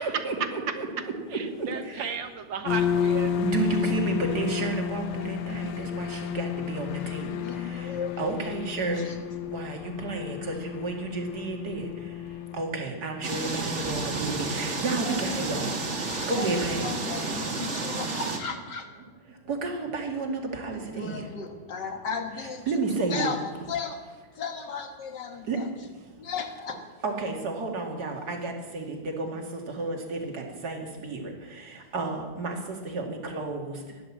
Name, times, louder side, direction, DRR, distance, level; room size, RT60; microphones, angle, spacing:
voice 1, 0.0-2.3 3.4-9.2 9.4-17.0 17.6-17.9 19.3-21.3 22.7-23.3 25.4-25.6 27.0-34.0, right 3 dB, 55° right, 2 dB, 2.7 m, -32 dB
voice 2, 1.3-3.3 4.3-4.7, right 6 dB, 80° right, 7 dB, 2.1 m, -35 dB
sound 1, 2.7-12.6, left 9 dB, 85° left, 1.6 m, -31 dB
voice 3, 7.3-8.4 9.0-9.2 15.0-15.5 16.0-18.9 20.9-22.7 23.1-24.0 24.4-25.7 26.2-26.8, left 5 dB, 65° left, 5 dB, 2.0 m, -35 dB
sound 2, 13.2-18.4, right 3 dB, 40° right, 2.1 m, -31 dB
16.0 x 11.0 x 7.4 m, 1.4 s
omnidirectional pair, 2.0 m